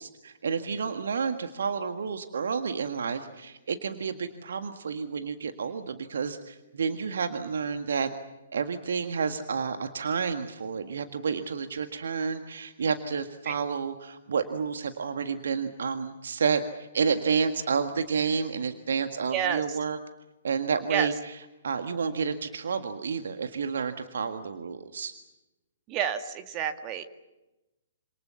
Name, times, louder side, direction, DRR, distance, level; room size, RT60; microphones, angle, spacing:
voice 1, 0.0-8.1 8.5-20.0 20.4-25.1, right 5 dB, 60° right, 8 dB, 1.7 m, -30 dB
voice 2, 19.3-19.6 20.9-21.1 25.9-27.0, right 8 dB, 25° right, 8 dB, 1.8 m, -29 dB
27.0 x 27.0 x 7.0 m, 1.0 s
figure-of-eight pair, 120°, 0 cm